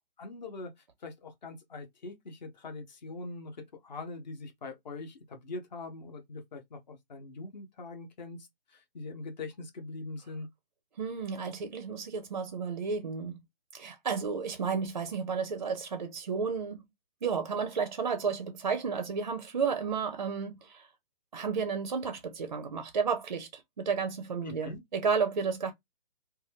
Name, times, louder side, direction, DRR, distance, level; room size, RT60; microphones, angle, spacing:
voice 1, 0.2-0.7 1.0-10.5 24.4-24.8, left 3 dB, 50° left, 0.8 m, -42 dB
voice 2, 11.0-13.4 13.7-16.8 17.2-20.9 21.3-25.7, right 5 dB, 45° right, 0.4 m, -32 dB
2.5 x 2.3 x 3.2 m
hypercardioid pair, 170°, 30 cm